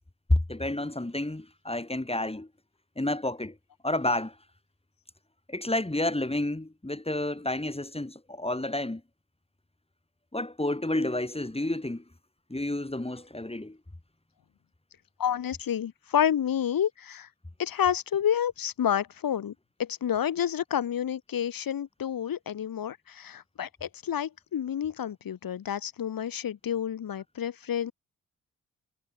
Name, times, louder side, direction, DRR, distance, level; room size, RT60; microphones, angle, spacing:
voice 1, 0.3-2.5 3.0-3.5 3.8-4.3 5.5-9.0 10.3-12.0 12.5-13.8, left 1 dB, 15° left, 6.2 m, -30 dB
voice 2, 15.2-17.3 17.6-19.5 19.8-27.9, left 9 dB, 65° left, 2.7 m, -29 dB
hypercardioid pair, 40°, 36 cm